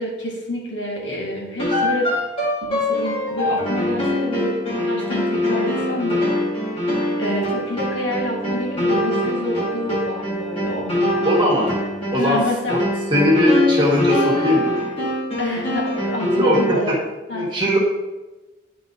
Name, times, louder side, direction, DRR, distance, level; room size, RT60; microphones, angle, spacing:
voice 1, 0.0-2.1 2.7-6.2 7.2-11.3 12.2-12.8 15.4-17.0 17.3-17.5, left 1 dB, 70° left, -3 dB, 2.2 m, -27 dB
sound 1, 1.6-16.9, left 1 dB, 30° left, 2.2 m, -23 dB
voice 2, 11.2-11.7 12.1-12.4 12.7-12.8 13.1-14.7 16.2-16.9 17.3-17.8, equal, 25° right, -4 dB, 1.7 m, -19 dB
10.5 x 5.0 x 4.0 m, 1.1 s
head